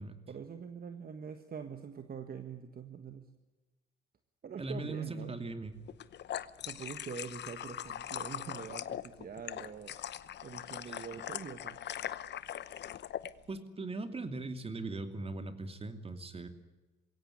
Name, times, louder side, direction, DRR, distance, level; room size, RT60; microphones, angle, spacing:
voice 1, 0.3-3.3 4.4-5.3 6.6-10.0 10.4-11.8, right 6 dB, 50° right, 8 dB, 1.6 m, -44 dB
voice 2, 4.6-5.8 10.9-11.0 13.5-16.5, right 3 dB, 30° right, 8 dB, 2.7 m, -39 dB
sound 1, 5.9-13.3, left 10 dB, 60° left, 0.9 m, -41 dB
22.0 x 17.0 x 9.9 m, 1.2 s
cardioid pair, 90°, 20 cm